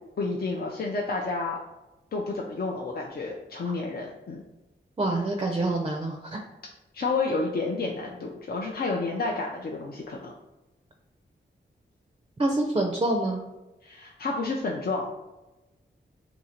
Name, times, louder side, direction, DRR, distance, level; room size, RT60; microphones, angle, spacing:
voice 1, 0.2-1.6 2.1-4.4 6.9-10.3 13.8-15.1, left 3 dB, 50° left, -1 dB, 0.5 m, -30 dB
voice 2, 5.0-6.4 12.4-13.4, right 2 dB, 25° right, 2 dB, 0.5 m, -26 dB
2.8 x 2.6 x 4.3 m, 1.0 s
cardioid pair, 50°, 20 cm